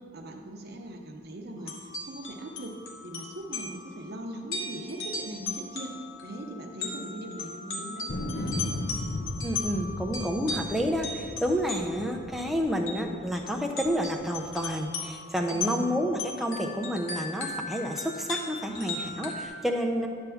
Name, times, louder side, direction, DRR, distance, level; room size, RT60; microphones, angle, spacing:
voice 1, 0.0-2.7 3.0-5.9 6.2-8.6 15.5-15.8 19.9-20.0, right 1 dB, 50° right, 2 dB, 0.8 m, -40 dB
sound 1, 1.6-12.2 12.9-13.0 13.3-19.5, left 3 dB, 75° left, 1.2 m, -38 dB
sound 2, 8.1-13.3 13.9-14.6, left 2 dB, 55° left, 0.7 m, -36 dB
voice 2, 9.4-20.1, equal, ahead, 1 dB, 0.5 m, -29 dB
10.5 x 3.5 x 7.0 m, 2.2 s
head